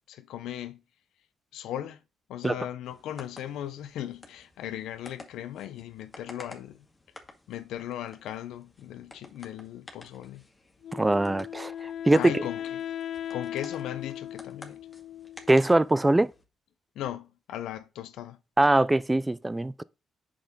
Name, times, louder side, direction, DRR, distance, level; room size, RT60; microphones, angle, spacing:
voice 1, 0.1-0.8 1.5-2.0 2.3-6.8 7.5-10.5 12.1-12.8 13.3-14.8 16.9-18.4, left 11 dB, 85° left, 0.8 m, -37 dB
sound 1, 2.8-16.4, left 2 dB, 25° left, 2.1 m, -52 dB
Wind instrument woodwind instrument, 10.8-15.9, left 10 dB, 60° left, 0.3 m, -38 dB
voice 2, 10.9-12.4 15.5-16.3 18.6-19.8, right 2 dB, 15° right, 0.4 m, -22 dB
8.3 x 6.5 x 3.8 m
cardioid pair, 90°, 0 cm